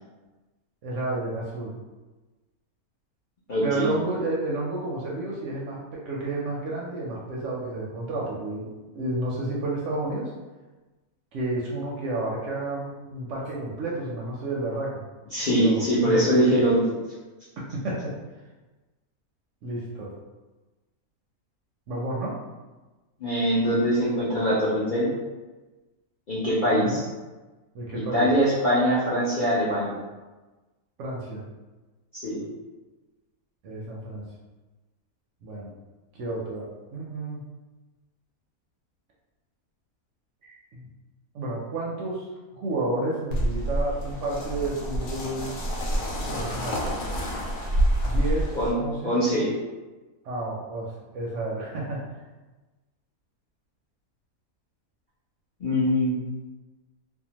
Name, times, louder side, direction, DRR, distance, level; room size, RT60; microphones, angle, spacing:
voice 1, 0.8-1.8 3.6-10.3 11.3-15.0 15.5-16.6 17.7-18.1 19.6-20.1 21.9-22.4 26.7-27.0 27.7-28.3 31.0-31.5 33.6-34.2 35.4-35.7 36.1-37.4 40.4-40.9 41.3-42.3 42.5-45.6 46.3-46.8 48.0-49.2 50.2-52.0, right 2 dB, 65° right, -4 dB, 0.8 m, -31 dB
voice 2, 3.5-3.9 15.3-16.8 23.2-25.1 26.3-27.0 27.9-30.0 32.1-32.4 48.5-48.7 49.0-49.5 55.6-56.1, equal, 55° left, -9 dB, 0.5 m, -23 dB
sound 1, 43.3-48.7, right 1 dB, 75° left, 1.1 m, -27 dB
2.7 x 2.1 x 2.8 m, 1.2 s
omnidirectional pair, 1.5 m